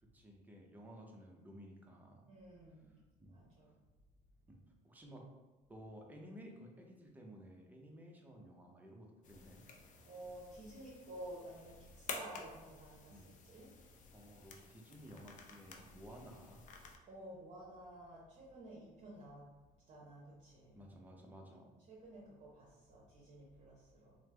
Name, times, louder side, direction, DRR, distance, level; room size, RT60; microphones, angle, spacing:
voice 1, 0.0-2.2 3.2-3.4 4.5-4.6 4.8-5.2 5.7-9.6 13.1-13.3 14.1-16.6 20.7-21.7, equal, 10° right, 0 dB, 0.5 m, -55 dB
voice 2, 2.3-3.0 3.3-3.7 10.0-13.7 17.1-19.5 19.9-20.8 21.9-24.1, right 1 dB, 45° right, -7 dB, 0.8 m, -52 dB
sound 1, 9.2-17.0, left 4 dB, 50° left, 0.4 m, -52 dB
3.1 x 2.0 x 3.2 m, 1.2 s
cardioid pair, 110°, 17 cm